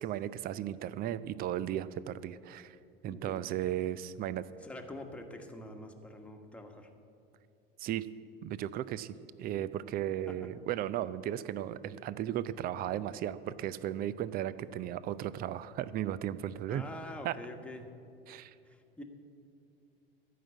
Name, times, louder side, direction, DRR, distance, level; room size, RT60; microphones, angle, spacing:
voice 1, 0.0-2.8 3.0-4.4 7.8-8.1 8.4-16.8 17.2-17.3 18.3-18.5, right 11 dB, 30° right, 17 dB, 0.5 m, -35 dB
voice 2, 3.1-3.4 4.6-6.9 10.3-10.4 16.7-17.9 18.6-19.0, left 1 dB, 5° left, 3 dB, 1.4 m, -45 dB
14.0 x 5.9 x 9.1 m, 2.6 s
figure-of-eight pair, 75°, 29 cm